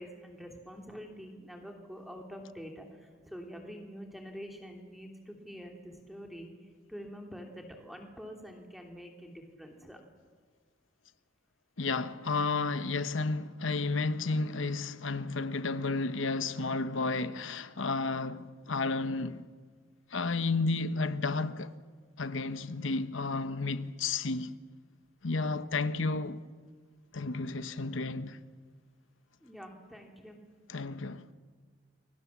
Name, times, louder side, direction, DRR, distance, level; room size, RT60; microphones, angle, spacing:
voice 1, 0.0-10.0 29.4-30.4, equal, ahead, 3.0 m, -46 dB
voice 2, 11.8-19.4 20.1-21.7 22.2-24.5 25.2-26.4 27.1-28.4 30.7-31.2, left 3 dB, 75° left, 1.0 m, -32 dB
29.5 x 23.5 x 7.3 m
head